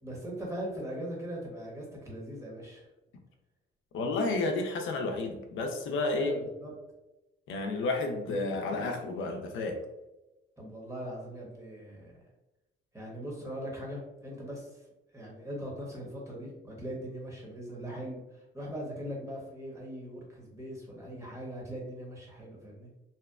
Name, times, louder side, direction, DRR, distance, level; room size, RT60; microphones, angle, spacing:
voice 1, 0.0-2.8 6.1-6.7 10.6-12.1 12.9-14.8 15.1-22.9, equal, 15° right, -3 dB, 0.9 m, -40 dB
voice 2, 3.9-6.4 7.5-9.8, left 3 dB, 80° left, 3 dB, 0.4 m, -31 dB
2.7 x 2.1 x 2.3 m, 1.0 s
cardioid pair, 90°, 20 cm